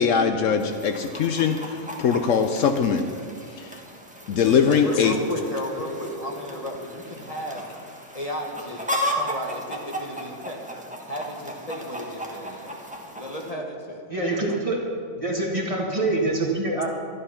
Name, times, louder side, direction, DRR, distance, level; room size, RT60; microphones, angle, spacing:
voice 1, 0.0-3.1 3.5-3.8 4.3-5.2, left 6 dB, 70° left, 1.0 m, -22 dB
Chicken rooster, 0.6-13.5, equal, 5° right, 1.1 m, -35 dB
sound 1, 4.2-6.8 7.2-7.3 7.7-7.9 9.0-9.1, equal, 10° left, 2.4 m, -37 dB
voice 2, 4.7-7.7 8.1-10.6 11.0-12.7 13.1-14.6, equal, 25° left, 1.5 m, -34 dB
voice 3, 14.1-14.8 15.2-16.9, right 2 dB, 25° right, 1.9 m, -25 dB
12.5 x 11.5 x 5.8 m
omnidirectional pair, 1.4 m